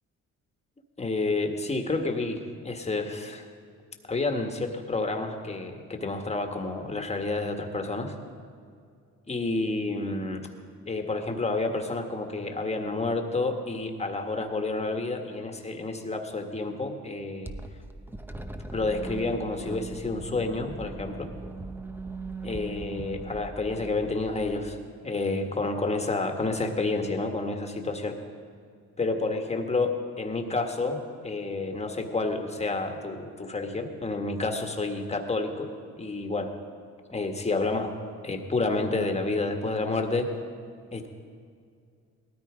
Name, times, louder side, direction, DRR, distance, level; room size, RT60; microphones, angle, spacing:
voice 1, 1.0-3.5 4.0-8.1 9.3-10.5 10.9-17.5 18.7-21.3 22.4-24.8 25.0-28.2 29.0-35.7 36.0-36.6 37.1-37.9 38.2-40.3 40.9-41.1, left 3 dB, 20° left, 5 dB, 1.7 m, -29 dB
sound 1, 17.4-24.8, right 3 dB, 5° right, 0.9 m, -39 dB
18.5 x 13.5 x 5.1 m, 2.3 s
cardioid pair, 90°, 30 cm